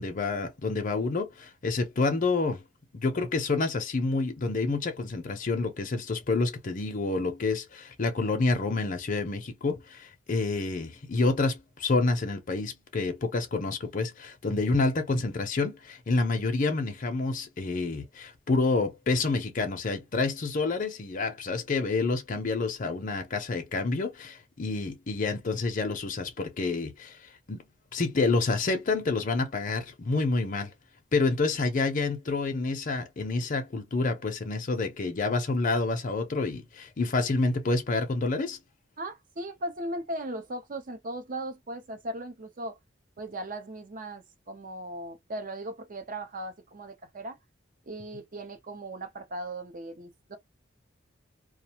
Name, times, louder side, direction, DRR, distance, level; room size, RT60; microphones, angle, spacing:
voice 1, 0.0-2.6 2.9-27.6 27.9-30.7 31.1-38.6, left 3 dB, 45° left, 0.6 m, -28 dB
voice 2, 39.0-42.8 43.2-47.4 47.9-50.4, right 1 dB, 45° right, 0.6 m, -38 dB
2.4 x 2.2 x 2.8 m
head